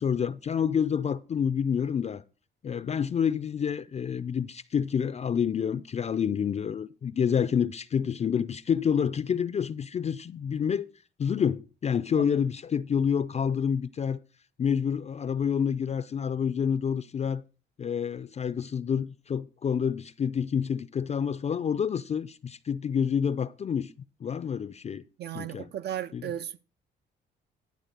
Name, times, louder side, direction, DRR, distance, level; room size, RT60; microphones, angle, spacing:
voice 1, 0.0-2.2 2.6-10.9 11.2-14.2 14.6-17.4 17.8-23.9 24.2-25.0 25.3-25.7 26.1-26.3, left 7 dB, 35° left, 0.4 m, -28 dB
voice 2, 25.2-26.6, right 10 dB, 55° right, 0.5 m, -35 dB
12.0 x 4.4 x 6.6 m
cardioid pair, 90°, 20 cm